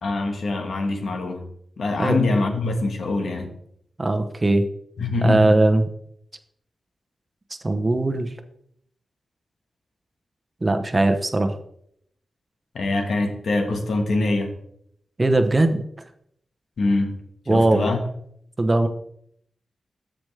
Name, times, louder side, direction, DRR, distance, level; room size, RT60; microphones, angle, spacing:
voice 1, 0.0-1.5 1.8-3.5 5.0-5.6 12.7-14.5 16.8-17.2 17.5-18.0, left 2 dB, 80° left, 4 dB, 1.4 m, -24 dB
voice 2, 4.0-4.7 5.2-5.9 7.6-8.3 10.6-11.5 15.2-15.8 17.5-17.9 18.6-18.9, right 2 dB, 30° right, 7 dB, 0.9 m, -19 dB
14.0 x 5.1 x 3.3 m, 0.71 s
wide cardioid pair, 85°, 0 cm